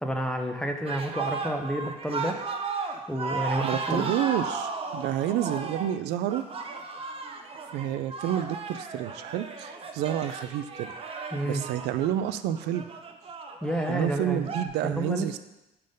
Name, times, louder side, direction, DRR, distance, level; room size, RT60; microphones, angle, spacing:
voice 1, 0.0-2.4 3.1-4.1 11.3-11.6 13.6-14.5 14.8-15.4, right 1 dB, 5° left, 3 dB, 0.7 m, -30 dB
sound 1, 0.8-14.7, right 4 dB, 35° right, 0.6 m, -35 dB
voice 2, 3.6-6.4 7.7-10.9 11.4-12.9 13.9-15.4, right 11 dB, 85° right, 12 dB, 0.4 m, -29 dB
5.5 x 3.9 x 5.2 m, 0.94 s
cardioid pair, 110°, 17 cm